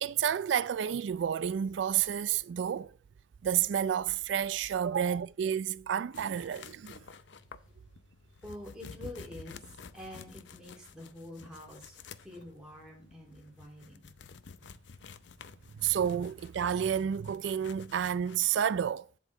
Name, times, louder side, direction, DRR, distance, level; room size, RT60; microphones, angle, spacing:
voice 1, 0.0-2.9 3.4-7.0 15.8-19.1, right 9 dB, 85° right, 0.3 m, -30 dB
sound 1, 6.1-18.5, left 5 dB, 85° left, 0.6 m, -51 dB
voice 2, 8.4-14.1, left 1 dB, 5° right, 3.6 m, -47 dB
8.3 x 7.9 x 3.8 m
head